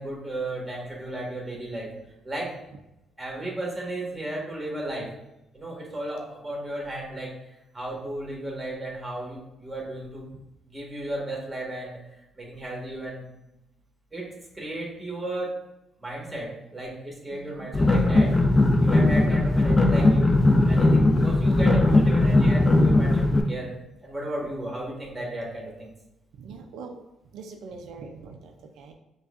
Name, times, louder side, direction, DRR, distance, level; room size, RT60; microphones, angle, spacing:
voice 1, 0.0-1.9 2.2-2.5 3.2-5.1 5.5-7.3 7.7-10.3 10.6-12.0 12.3-13.2 14.1-14.3 14.5-15.5 16.0-18.3 18.8-23.7 24.0-25.9, right 1 dB, 15° right, -3 dB, 1.4 m, -34 dB
voice 2, 17.3-17.7 26.4-27.0 27.3-28.9, right 4 dB, 85° right, 4 dB, 0.4 m, -42 dB
sound 1, 17.7-23.4, left 2 dB, 25° left, 0.4 m, -19 dB
6.0 x 2.3 x 2.4 m, 0.91 s
cardioid pair, 90°, 0 cm